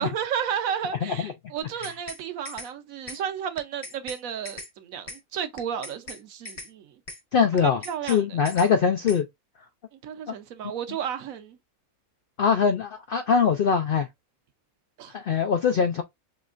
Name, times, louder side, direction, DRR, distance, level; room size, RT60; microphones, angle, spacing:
voice 1, 0.0-6.9 7.6-8.4 10.0-11.6 15.0-15.1, right 8 dB, 70° right, 1.1 m, -32 dB
voice 2, 1.0-1.3 7.3-9.3 12.4-14.1 15.1-16.0, left 6 dB, 85° left, 0.4 m, -22 dB
sound 1, 1.6-2.2 2.4-2.7 3.1-3.2 3.6-4.2 4.4-4.7 5.1-5.2 5.6-6.2 6.4-6.7 7.1-7.2 7.6-8.2 8.4-8.7 9.1-9.2, left 2 dB, 30° left, 0.6 m, -39 dB
5.2 x 3.2 x 2.4 m
omnidirectional pair, 1.6 m